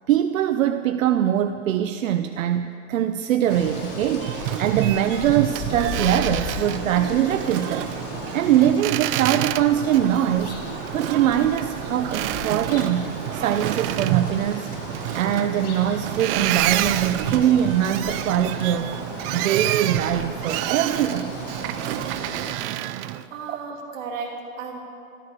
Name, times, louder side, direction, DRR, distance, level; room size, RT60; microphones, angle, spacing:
voice 1, 0.1-7.9 8.3-10.6 10.9-14.7 15.2-18.9 19.3-21.3 23.5-23.6, right 10 dB, 85° right, 9 dB, 0.7 m, -22 dB
Boat Water vehicle, 3.4-23.2, right 14 dB, 45° right, 0.6 m, -29 dB
sound 1, 3.5-22.5, left 4 dB, 40° left, 2.6 m, -36 dB
voice 2, 23.3-24.8, right 4 dB, 70° right, -1 dB, 3.0 m, -34 dB
13.5 x 13.0 x 6.7 m, 2.6 s
hypercardioid pair, 120°, 39 cm